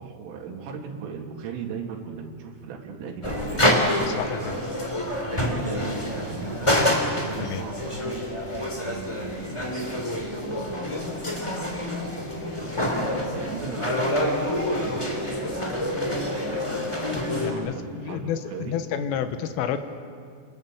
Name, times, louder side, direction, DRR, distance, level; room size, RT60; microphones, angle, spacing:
voice 1, 0.0-3.7 5.3-8.3 9.8-10.8 11.7-12.8 13.3-14.1 14.7-15.5 17.3-18.8, right 5 dB, 85° right, 1 dB, 4.9 m, -37 dB
sound 1, 3.2-17.5, left 1 dB, 10° left, 2.2 m, -27 dB
voice 2, 4.1-4.6 7.4-7.6 17.1-19.8, left 8 dB, 90° left, 9 dB, 3.9 m, -30 dB
27.5 x 27.0 x 7.5 m, 2.3 s
omnidirectional pair, 5.6 m